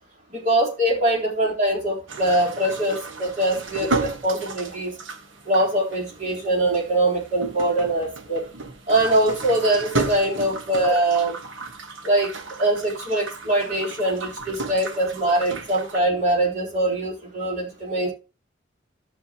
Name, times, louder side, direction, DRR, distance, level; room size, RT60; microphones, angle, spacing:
voice 1, 0.3-4.9 5.5-8.5 8.9-11.3 12.0-12.3 12.6-18.1, right 1 dB, 40° right, -3 dB, 3.7 m, -22 dB
sound 1, 2.1-16.0, right 3 dB, 85° right, 1.3 m, -34 dB
14.5 x 6.6 x 2.9 m, 0.29 s
head